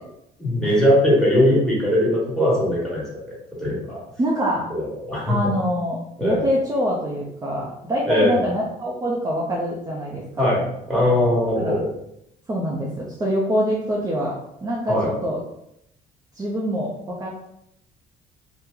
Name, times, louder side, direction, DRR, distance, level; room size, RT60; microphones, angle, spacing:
voice 1, 0.4-3.0 3.6-4.0 4.7-5.4 6.2-6.5 8.1-8.5 10.4-11.9 14.9-15.1, left 1 dB, 5° left, -6 dB, 1.5 m, -20 dB
voice 2, 4.2-4.7 5.3-10.5 11.6-11.8 12.5-15.4 16.3-17.3, equal, 20° right, -4 dB, 0.6 m, -25 dB
2.9 x 2.1 x 3.7 m, 0.79 s
cardioid pair, 110°, 17 cm